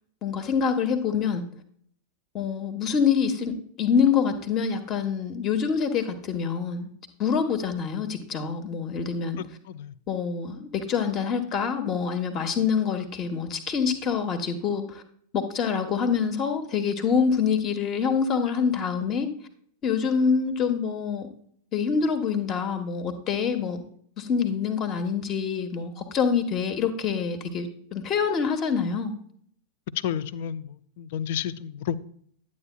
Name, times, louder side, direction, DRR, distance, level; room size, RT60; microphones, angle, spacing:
voice 1, 0.2-1.4 2.3-6.9 7.2-9.4 10.1-15.0 15.3-19.3 19.8-21.3 21.7-23.8 24.2-29.1, left 6 dB, 30° left, 8 dB, 1.1 m, -26 dB
voice 2, 9.4-9.9 30.0-32.0, left 9 dB, 55° left, 17 dB, 0.4 m, -31 dB
10.5 x 8.4 x 2.2 m, 0.62 s
figure-of-eight pair, 90°, 0 cm